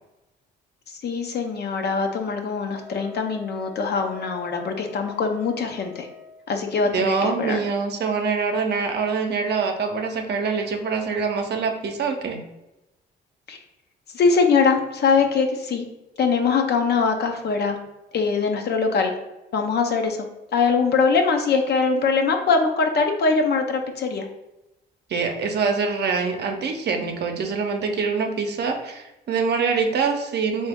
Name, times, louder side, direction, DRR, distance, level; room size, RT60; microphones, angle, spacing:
voice 1, 0.9-6.1 6.5-7.6 13.5-13.6 14.1-15.9 16.2-17.8 18.1-19.1 19.5-20.3 20.5-24.3, left 5 dB, 55° left, 4 dB, 0.6 m, -22 dB
Wind instrument woodwind instrument, 2.8-6.4, left 4 dB, ahead, 0.6 m, -44 dB
voice 2, 6.9-12.4 25.1-30.7, right 5 dB, 55° right, 4 dB, 0.7 m, -24 dB
3.7 x 2.8 x 3.5 m, 0.96 s
cardioid pair, 90°, 20 cm